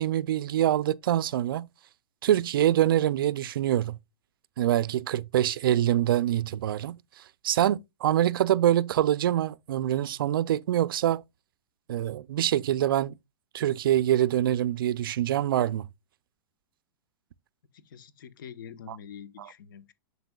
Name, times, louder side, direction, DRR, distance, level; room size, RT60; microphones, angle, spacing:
voice 1, 0.0-1.7 2.2-4.0 4.6-7.0 7.4-11.2 11.9-13.1 13.5-15.9 18.9-19.0, right 12 dB, 70° right, 0.4 m, -25 dB
voice 2, 17.7-19.9, left 8 dB, 65° left, 1.1 m, -45 dB
8.0 x 7.0 x 2.3 m
supercardioid pair, 175°, 12 cm